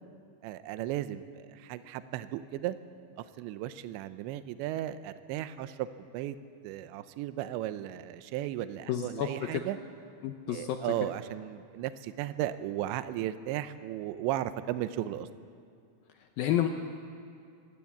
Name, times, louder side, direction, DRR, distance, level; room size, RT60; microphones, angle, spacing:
voice 1, 0.4-2.8 3.4-5.9 6.1-6.4 6.6-9.8 10.5-15.3, right 13 dB, 80° right, 12 dB, 2.9 m, -35 dB
voice 2, 8.9-9.6 10.2-10.8 16.4-16.7, left 11 dB, 85° left, 5 dB, 2.1 m, -30 dB
24.0 x 18.0 x 8.4 m, 2.3 s
omnidirectional pair, 5.4 m